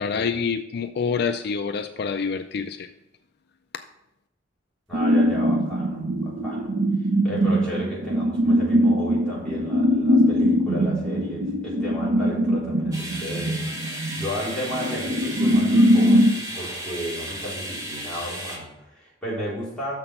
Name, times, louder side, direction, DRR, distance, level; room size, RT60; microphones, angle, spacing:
voice 1, 0.0-2.9, left 5 dB, 60° left, 0.4 m, -27 dB
voice 2, 4.9-6.7 7.2-19.9, equal, 5° left, 3.6 m, -34 dB
sound 1, 4.9-16.4, equal, 80° right, 0.8 m, -21 dB
sound 2, 12.9-18.6, right 1 dB, 20° right, 1.7 m, -34 dB
6.6 x 6.0 x 5.6 m
head